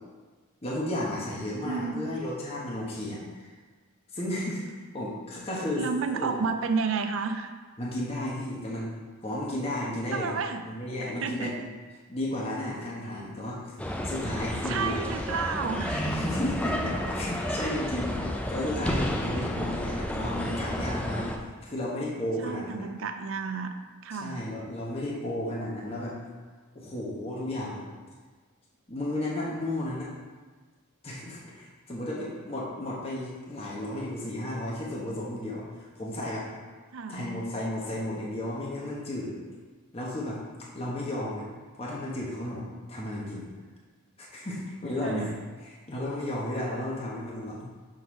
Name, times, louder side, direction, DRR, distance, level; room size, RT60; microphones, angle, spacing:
voice 1, 0.6-3.5 4.1-5.9 6.1-6.3 7.8-8.9 9.2-10.3 10.6-11.6 12.1-13.6 14.0-14.9 15.9-21.3 21.6-22.8 24.2-26.2 26.7-27.8 28.9-30.1 31.0-36.5 37.1-39.3 39.9-40.4 40.7-41.5 41.8-43.5 44.2-45.3 45.9-47.7, left 1 dB, 25° left, -5 dB, 1.0 m, -33 dB
voice 2, 1.6-2.2 5.8-7.5 10.1-10.6 11.0-11.6 14.7-16.1 22.4-23.7 24.0-24.4 36.9-37.2 45.0-45.3, right 5 dB, 65° right, 7 dB, 0.4 m, -31 dB
sound 1, 13.8-21.4, left 1 dB, 5° left, 0.3 m, -31 dB
6.3 x 3.9 x 5.0 m, 1.4 s
head